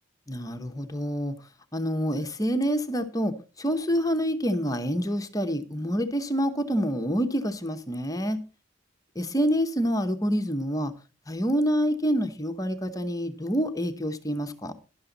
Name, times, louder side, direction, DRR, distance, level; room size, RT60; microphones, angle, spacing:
voice 1, 0.3-1.4 1.7-8.4 9.1-10.9 11.3-14.7, equal, 20° left, 0.9 m, -27 dB
12.0 x 11.5 x 3.9 m
head